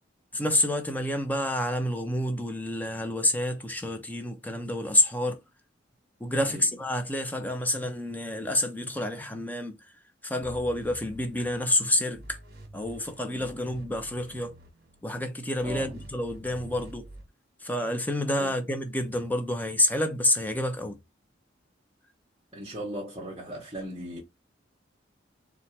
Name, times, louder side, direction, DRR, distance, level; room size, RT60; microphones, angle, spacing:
voice 1, 0.3-5.4 6.2-9.8 10.2-12.4 12.7-14.5 15.0-17.1 17.6-21.0, left 1 dB, 10° left, 0.7 m, -28 dB
sound 1, 10.4-11.8 12.1-15.0 15.5-17.3, right 1 dB, 55° right, 1.4 m, -47 dB
voice 2, 15.6-16.0 18.4-18.6 22.5-24.2, right 1 dB, 30° right, 1.2 m, -38 dB
4.3 x 2.5 x 4.4 m
head